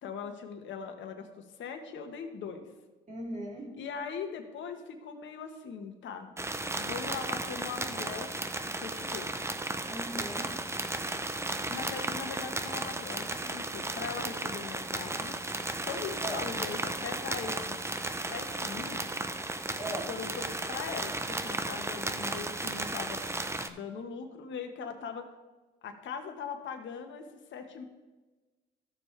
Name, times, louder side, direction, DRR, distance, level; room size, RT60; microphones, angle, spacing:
voice 1, 0.0-2.7 3.8-6.3 6.7-8.3 8.7-9.3 11.7-15.3 15.9-17.8 18.3-19.0 20.1-23.2 23.6-25.2 25.8-27.8, left 6 dB, 70° left, 5 dB, 1.3 m, -40 dB
voice 2, 3.1-3.7 9.9-10.6 16.2-16.4 19.8-20.1, right 1 dB, 35° right, -3 dB, 3.0 m, -38 dB
sound 1, 6.4-23.7, right 2 dB, 15° right, 0.6 m, -35 dB
14.0 x 6.5 x 3.3 m, 1.2 s
cardioid pair, 90°, 20 cm